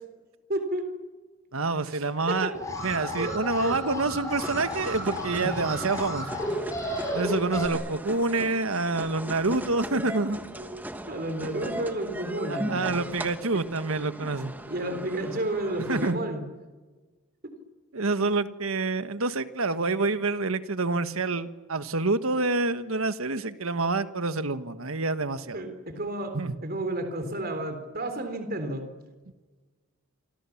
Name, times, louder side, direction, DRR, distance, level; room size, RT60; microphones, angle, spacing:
voice 1, 0.5-0.9 1.9-2.5 3.2-3.8 9.9-10.1 10.6-10.8 11.1-13.0 13.5-13.6 14.6-16.4 25.5-28.8, right 1 dB, 45° right, 7 dB, 3.7 m, -32 dB
voice 2, 1.5-2.5 2.8-6.4 7.1-10.4 12.5-14.5 15.8-16.2 17.9-25.6 26.3-26.5, right 3 dB, 80° right, 11 dB, 1.5 m, -27 dB
Alarm, 2.5-7.7, equal, 15° left, 5.6 m, -33 dB
sound 1, 4.4-16.1, right 1 dB, 10° right, 1.3 m, -38 dB
28.0 x 25.5 x 7.3 m, 1.3 s
head